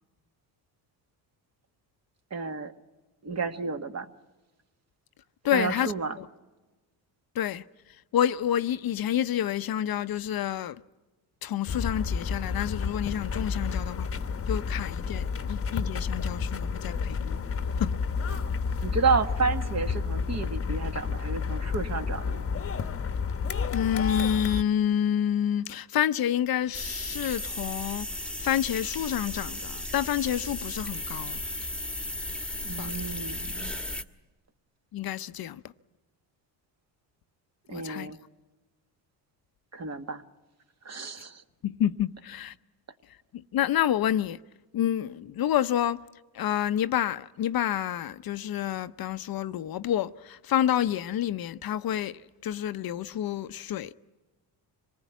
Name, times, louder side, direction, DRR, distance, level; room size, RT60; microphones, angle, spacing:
voice 1, 2.3-2.7 3.2-4.1 5.5-6.2 18.8-22.5 32.6-33.7 37.7-38.2 39.7-40.2 40.9-41.4, right 4 dB, 35° right, 1.6 m, -31 dB
voice 2, 5.4-5.9 6.2-6.3 7.3-7.6 8.1-10.8 11.4-14.1 14.5-17.4 17.8-17.9 23.7-31.4 32.8-32.9 34.9-35.6 37.7-38.1 41.6-42.5 43.3-44.4 44.7-46.0 46.3-53.9, left 10 dB, 50° left, 0.7 m, -28 dB
sound 1, 11.7-24.6, left 5 dB, 30° left, 1.1 m, -30 dB
sound 2, 26.7-34.0, left 1 dB, ahead, 1.4 m, -35 dB
26.0 x 19.5 x 9.2 m
cardioid pair, 90°, 45 cm